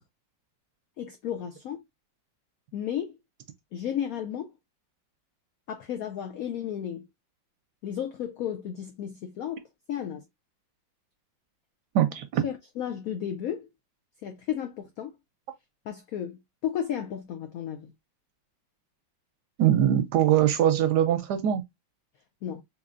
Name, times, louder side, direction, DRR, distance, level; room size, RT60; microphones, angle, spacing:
voice 1, 1.0-1.8 2.7-3.2 3.7-4.5 5.7-7.1 7.8-10.2 12.4-13.7 14.2-15.1 15.9-17.9 22.4-22.6, left 9 dB, 80° left, 0.7 m, -33 dB
voice 2, 11.9-12.4 19.6-21.6, right 11 dB, 75° right, 1.0 m, -22 dB
3.9 x 3.0 x 2.4 m
omnidirectional pair, 2.1 m